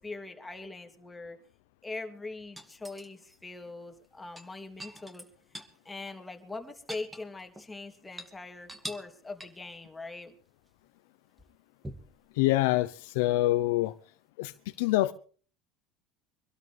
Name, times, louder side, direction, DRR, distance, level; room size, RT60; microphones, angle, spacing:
voice 1, 0.0-1.4 1.8-5.2 5.8-10.3, left 3 dB, 10° left, 2.9 m, -42 dB
sound 1, 2.6-3.4 4.2-5.8 6.1-6.2 6.5-7.7 8.0-8.3 8.7-9.1 9.4-9.7 11.8-12.2 13.9-14.0, right 1 dB, 10° right, 2.4 m, -44 dB
voice 2, 12.4-13.9 14.4-14.5 14.8-15.1, left 17 dB, 85° left, 0.8 m, -25 dB
25.0 x 12.5 x 3.5 m
supercardioid pair, 105°, 0 cm